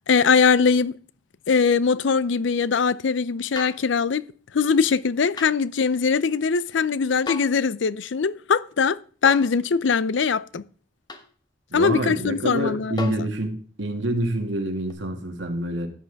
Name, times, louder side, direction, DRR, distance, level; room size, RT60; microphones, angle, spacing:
voice 1, 0.1-0.9 1.5-4.3 4.5-10.6 11.7-13.0, left 5 dB, 70° left, 0.5 m, -21 dB
repinique-rimshot, 3.6-3.9 5.4-5.6 7.3-7.6 9.2-9.6 11.1-11.3 13.0-13.3 14.9-15.0, left 3 dB, 20° left, 1.1 m, -35 dB
voice 2, 11.7-15.9, right 1 dB, 70° right, 2.1 m, -27 dB
14.0 x 9.5 x 3.5 m
head